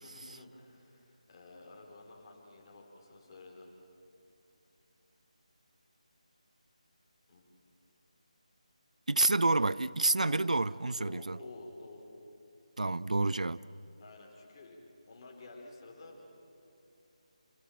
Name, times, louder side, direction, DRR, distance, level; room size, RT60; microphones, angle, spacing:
voice 1, 0.0-3.7 7.3-7.4 10.2-10.4 11.0-12.1 14.0-14.8 15.1-16.2, left 2 dB, 30° left, 4.7 m, -51 dB
voice 2, 9.1-11.4 12.8-13.6, right 2 dB, 70° right, 0.5 m, -28 dB
29.0 x 20.0 x 7.4 m
figure-of-eight pair, 160°, 4 cm